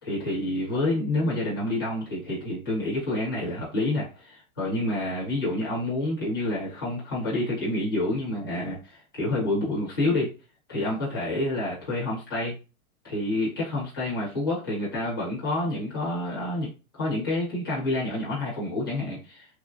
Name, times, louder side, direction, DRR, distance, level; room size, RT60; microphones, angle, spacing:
voice 1, 0.0-10.3 10.7-12.5 13.0-16.7 16.9-19.5, left 1 dB, 15° left, -6 dB, 0.4 m, -28 dB
3.0 x 2.4 x 2.4 m, 0.32 s
hypercardioid pair, 180°, 44 cm